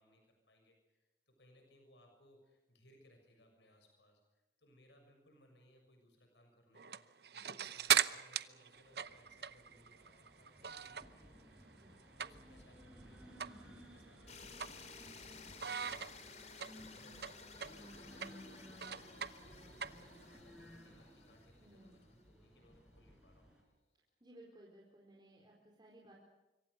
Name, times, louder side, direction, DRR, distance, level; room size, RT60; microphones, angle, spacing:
voice 1, 0.0-11.7 12.0-23.5, left 1 dB, 80° left, 4 dB, 6.8 m, -67 dB
sound 1, 6.7-11.2 11.6-12.7 13.0-13.1 13.4-13.6 14.0-15.2 15.6-20.4, right 9 dB, 65° right, 0.8 m, -38 dB
voice 2, 7.3-7.6 11.7-12.0 21.6-22.0 24.2-26.1, right 1 dB, 25° right, -3 dB, 4.3 m, -60 dB
sound 2, 8.7-23.6, equal, 5° right, 6.0 m, -58 dB
sound 3, 14.3-22.3, left 5 dB, 40° left, 2.9 m, -56 dB
26.0 x 24.0 x 6.8 m, 1.0 s
head